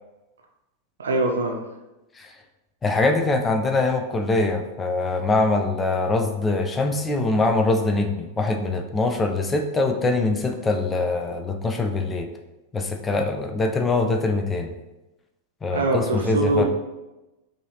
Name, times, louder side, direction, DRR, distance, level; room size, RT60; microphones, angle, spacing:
voice 1, 1.0-1.6 15.7-16.6, right 2 dB, 70° right, 2 dB, 0.6 m, -23 dB
voice 2, 2.8-12.3 12.7-14.7 15.6-16.6, left 2 dB, 15° left, 4 dB, 0.5 m, -23 dB
5.5 x 2.7 x 2.8 m, 1.0 s
figure-of-eight pair, 90°, 0 cm